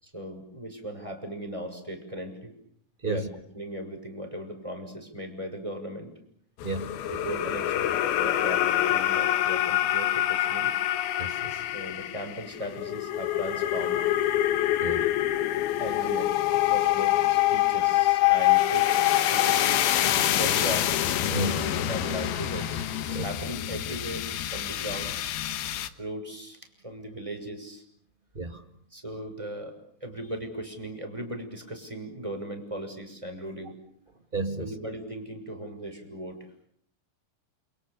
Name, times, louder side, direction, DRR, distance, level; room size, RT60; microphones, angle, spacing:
voice 1, 0.0-2.6 3.0-3.3 3.5-6.1 7.1-7.9 8.2-10.7 11.7-14.0 15.8-21.0 21.5-25.2 26.0-27.8 28.9-29.7 30.0-33.7 34.6-36.5, right 1 dB, 10° right, 4 dB, 6.1 m, -38 dB
sound 1, 6.6-25.9, left 13 dB, 80° left, 3.2 m, -26 dB
voice 2, 6.6-6.9 11.2-11.6 14.8-15.1 21.3-21.6 23.1-23.3 28.3-28.6 34.3-34.7, right 2 dB, 45° right, 7 dB, 0.6 m, -32 dB
29.0 x 28.5 x 6.7 m, 0.66 s
omnidirectional pair, 4.3 m